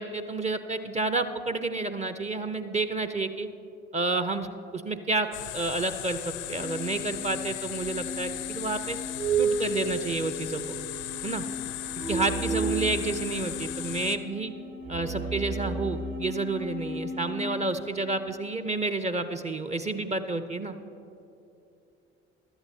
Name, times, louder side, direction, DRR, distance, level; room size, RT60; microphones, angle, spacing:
voice 1, 0.0-3.5 3.9-4.5 4.7-5.3 5.5-9.0 9.4-10.8 11.2-11.4 12.1-14.5 14.9-20.8, right 3 dB, 20° right, 10 dB, 0.5 m, -30 dB
sound 1, 5.3-14.2, left 15 dB, 65° left, 0.6 m, -37 dB
sound 2, 6.4-17.6, right 3 dB, 60° right, 2.1 m, -33 dB
16.5 x 11.5 x 2.7 m, 2.7 s
figure-of-eight pair, 50°, 34 cm